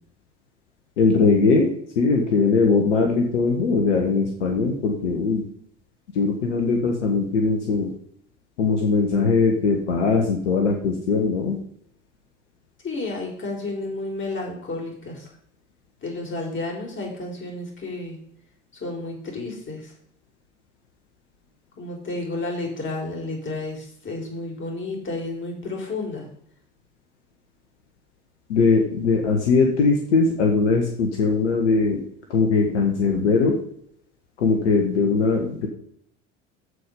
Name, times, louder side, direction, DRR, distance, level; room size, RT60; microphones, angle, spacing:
voice 1, 1.0-1.7 2.0-5.4 6.2-7.9 8.6-11.6 28.5-32.0 32.3-33.5 34.4-35.7, left 4 dB, 75° left, 2 dB, 1.7 m, -20 dB
voice 2, 12.8-15.3 16.0-18.2 18.8-19.9 21.8-26.3, left 2 dB, 35° left, 0 dB, 4.9 m, -31 dB
14.5 x 4.9 x 5.6 m, 0.67 s
figure-of-eight pair, 70°, 36 cm